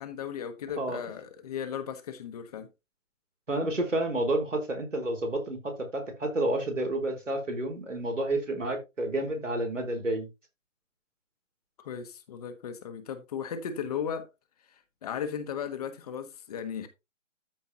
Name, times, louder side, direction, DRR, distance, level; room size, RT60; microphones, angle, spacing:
voice 1, 0.0-2.7 11.8-14.3 15.0-16.9, left 8 dB, 30° left, 1.5 m, -36 dB
voice 2, 3.5-10.3, right 1 dB, 75° right, 4.0 m, -30 dB
13.5 x 5.3 x 2.9 m
figure-of-eight pair, 140°, 38 cm